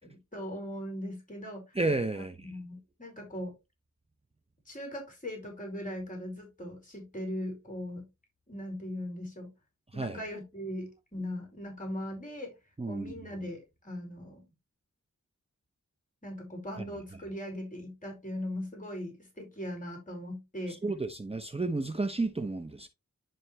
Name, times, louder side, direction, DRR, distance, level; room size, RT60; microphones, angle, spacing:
voice 1, 0.0-1.8 2.1-3.5 4.6-8.1 8.5-9.5 9.9-12.5 12.9-14.5 16.2-20.8, left 1 dB, 25° left, 4.5 m, -39 dB
voice 2, 1.7-2.5 9.9-10.2 12.8-13.1 20.7-22.9, right 2 dB, 20° right, 0.8 m, -32 dB
11.0 x 4.0 x 3.1 m
wide cardioid pair, 65°, 30 cm